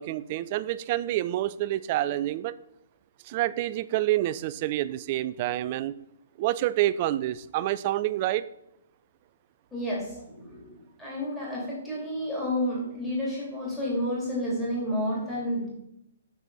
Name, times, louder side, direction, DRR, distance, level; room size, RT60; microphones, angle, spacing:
voice 1, 0.0-2.5 3.3-5.9 6.4-8.5, right 14 dB, 35° right, 16 dB, 0.3 m, -28 dB
voice 2, 9.7-15.7, equal, 5° left, -6 dB, 2.8 m, -30 dB
6.8 x 6.1 x 4.0 m, 0.82 s
figure-of-eight pair, 125°, 0 cm